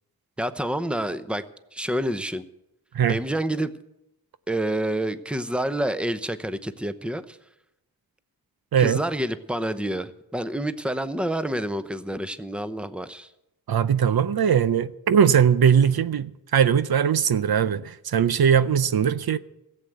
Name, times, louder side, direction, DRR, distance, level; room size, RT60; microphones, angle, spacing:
voice 1, 0.4-1.4 1.7-2.4 3.1-3.7 4.5-7.4 8.8-13.3, right 1 dB, 5° right, 0.8 m, -28 dB
voice 2, 13.7-19.4, right 8 dB, 75° right, 0.6 m, -20 dB
15.0 x 7.7 x 7.9 m
cardioid pair, 55°, 37 cm